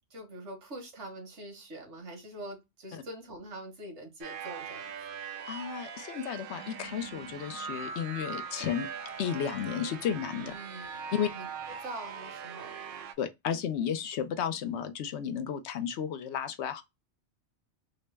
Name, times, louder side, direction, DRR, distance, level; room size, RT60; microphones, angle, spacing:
voice 1, 0.1-4.9 10.4-12.8, right 1 dB, 90° right, 1.5 m, -44 dB
sound 1, 4.2-13.1, right 6 dB, 60° right, 0.7 m, -41 dB
voice 2, 5.5-8.9 9.2-10.5 11.1-11.3 13.2-16.8, left 8 dB, 75° left, 0.9 m, -33 dB
3.7 x 2.1 x 3.3 m
omnidirectional pair, 1.1 m